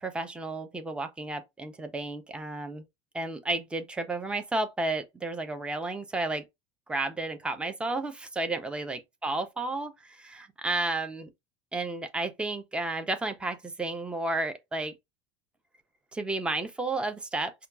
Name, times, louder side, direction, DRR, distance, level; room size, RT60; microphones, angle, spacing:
voice 1, 0.0-2.8 3.1-6.4 6.9-11.3 11.7-14.9 16.1-17.5, right 2 dB, 5° right, 0.5 m, -32 dB
5.6 x 2.3 x 2.5 m
supercardioid pair, 145°, 15 cm